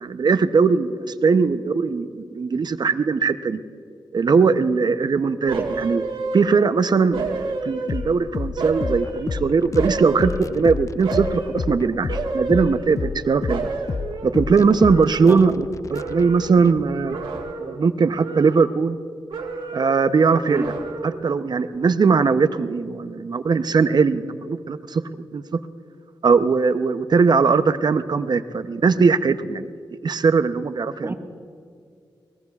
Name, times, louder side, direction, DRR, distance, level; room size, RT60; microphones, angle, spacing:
voice 1, 0.0-3.6 4.1-6.1 6.3-13.7 14.2-17.2 17.6-19.0 19.7-20.7 21.0-25.0 25.3-25.4 26.2-29.6 29.9-31.1, right 5 dB, 55° right, 11 dB, 0.6 m, -20 dB
voice 2, 5.5-5.9 7.8-7.9 15.3-15.4 20.5-20.7 31.0-31.1, right 2 dB, 25° right, 3 dB, 1.6 m, -30 dB
sound 1, 5.5-6.8 7.1-8.2 8.6-10.7 11.0-11.6 12.1-13.2 13.5-15.6 15.9-16.6 17.1-17.9 18.2-19.0 19.3-20.0 20.5-21.3 21.6-21.7, right 3 dB, 85° right, 1.7 m, -30 dB
sound 2, 7.9-17.5, left 4 dB, 40° left, 0.4 m, -31 dB
23.0 x 20.0 x 2.4 m, 2.3 s
cardioid pair, 60°, 8 cm